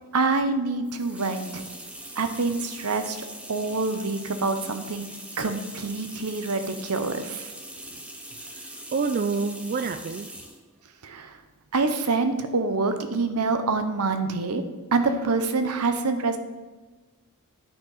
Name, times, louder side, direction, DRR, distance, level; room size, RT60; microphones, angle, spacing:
voice 1, 0.1-1.6 2.2-3.2 3.5-5.1 5.4-7.5 11.0-11.4 11.7-14.6 14.9-16.4, right 3 dB, 85° right, 8 dB, 0.8 m, -26 dB
sound 1, 0.8-10.6, right 1 dB, 5° right, 0.8 m, -42 dB
voice 2, 8.3-10.3, right 4 dB, 40° right, 10 dB, 0.3 m, -29 dB
9.4 x 6.2 x 4.1 m, 1.3 s
head